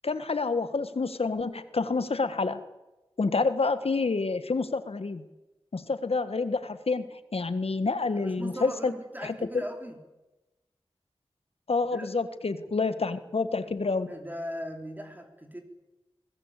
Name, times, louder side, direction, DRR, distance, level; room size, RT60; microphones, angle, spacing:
voice 1, 0.0-2.6 3.2-5.2 5.7-7.0 7.3-8.9 9.2-9.6 11.7-14.1, left 3 dB, 75° left, 12 dB, 1.5 m, -28 dB
voice 2, 8.1-10.0 11.9-12.1 14.1-15.6, equal, 15° right, 4 dB, 3.4 m, -39 dB
22.5 x 19.5 x 8.3 m, 1.0 s
wide cardioid pair, 60°, 10 cm